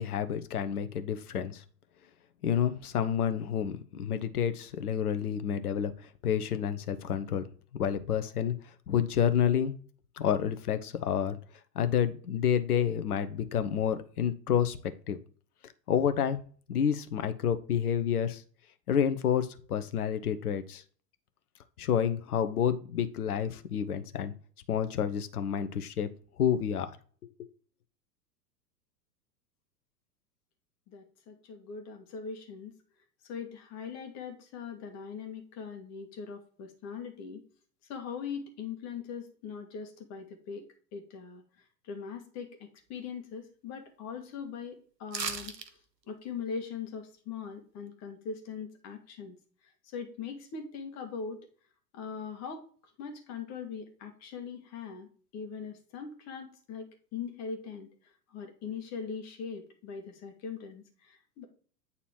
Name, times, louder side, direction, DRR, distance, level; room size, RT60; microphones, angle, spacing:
voice 1, 0.0-1.6 2.4-7.4 7.8-8.5 8.9-9.7 10.2-11.4 11.7-14.8 15.1-15.2 15.9-16.4 16.7-18.4 18.9-20.8 21.8-24.3 24.7-26.1 26.4-27.0 27.4-27.5, left 8 dB, 60° left, 11 dB, 1.0 m, -29 dB
voice 2, 30.9-32.7 33.3-37.4 37.9-40.7 40.9-41.4 41.8-45.5 46.1-49.4 49.9-51.4 51.9-52.6 53.0-57.9 58.3-61.5, left 6 dB, 30° left, 5 dB, 1.8 m, -41 dB
sound 1, 45.1-45.7 46.0-46.1, right 5 dB, 75° right, 1.1 m, -35 dB
8.9 x 4.1 x 4.5 m, 0.43 s
figure-of-eight pair, 95°, 49 cm